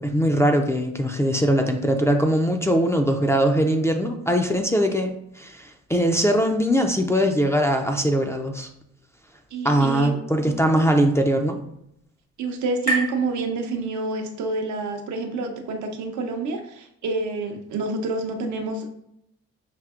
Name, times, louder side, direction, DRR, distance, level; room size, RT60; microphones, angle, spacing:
voice 1, 0.0-8.7 9.6-11.6, equal, 10° left, 2 dB, 0.4 m, -21 dB
voice 2, 9.5-10.2 12.4-18.9, right 3 dB, 70° right, 4 dB, 0.7 m, -28 dB
sound 1, 10.5-14.3, right 2 dB, 75° left, 1.5 m, -34 dB
5.9 x 2.6 x 2.4 m, 0.77 s
cardioid pair, 90°, 30 cm